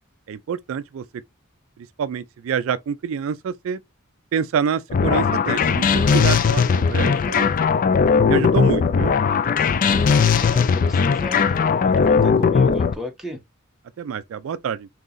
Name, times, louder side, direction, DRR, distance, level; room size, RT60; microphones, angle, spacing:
voice 1, 0.3-1.0 2.0-3.8 4.3-7.5 8.3-9.2 14.0-14.9, right 7 dB, 65° right, 0.3 m, -26 dB
sound 1, 4.9-12.9, left 5 dB, 40° left, 0.3 m, -18 dB
voice 2, 10.0-13.4, left 1 dB, ahead, 1.0 m, -35 dB
3.7 x 2.9 x 3.9 m
head